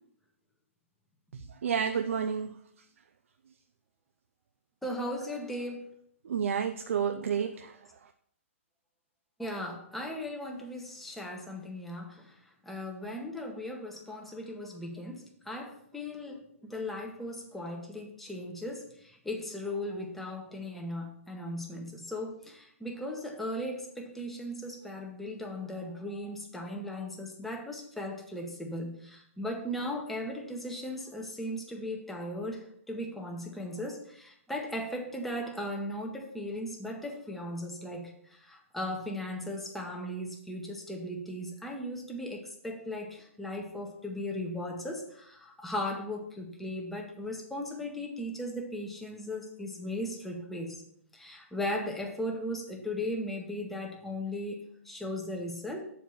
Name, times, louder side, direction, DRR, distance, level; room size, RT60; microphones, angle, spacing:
voice 1, 1.3-2.6 6.2-8.1, right 7 dB, 65° right, 7 dB, 0.5 m, -31 dB
voice 2, 4.8-5.8 9.4-12.3 12.6-50.8 51.1-55.8, left 1 dB, ahead, 1 dB, 0.9 m, -37 dB
7.0 x 4.8 x 7.0 m, 0.69 s
hypercardioid pair, 160°, 8 cm